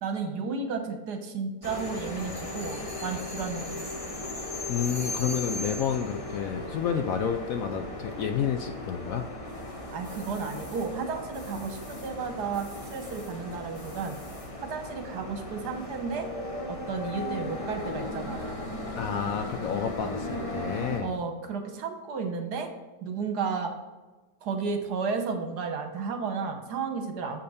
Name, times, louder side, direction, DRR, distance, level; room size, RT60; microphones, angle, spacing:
voice 1, 0.0-3.9 9.9-14.2 14.6-16.3 16.7-18.5 21.0-22.7 23.0-23.7 24.4-27.4, right 5 dB, 75° right, 5 dB, 1.5 m, -33 dB
sound 1, 1.6-21.0, left 1 dB, 25° left, 0.9 m, -37 dB
voice 2, 4.7-9.3 18.9-21.2, left 8 dB, 70° left, 6 dB, 0.8 m, -30 dB
7.7 x 5.2 x 4.2 m, 1.2 s
omnidirectional pair, 1.8 m